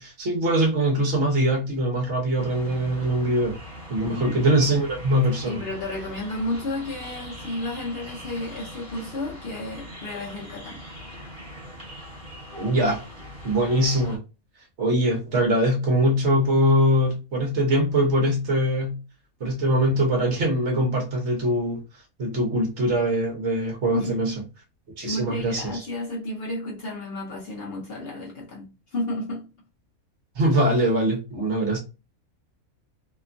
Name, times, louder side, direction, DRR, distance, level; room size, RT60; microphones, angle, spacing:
voice 1, 0.0-3.6 3.9-5.6 12.6-13.0 13.4-14.2 14.8-19.0 19.4-21.8 22.2-24.3 25.0-25.9 30.4-31.8, right 1 dB, 55° right, 1.1 m, -22 dB
sound 1, 2.4-14.2, equal, 35° right, 1.6 m, -41 dB
voice 2, 4.0-4.3 5.4-10.8 23.9-24.4 25.0-29.5, left 1 dB, 55° left, 0.8 m, -32 dB
2.9 x 2.3 x 2.4 m
omnidirectional pair, 1.5 m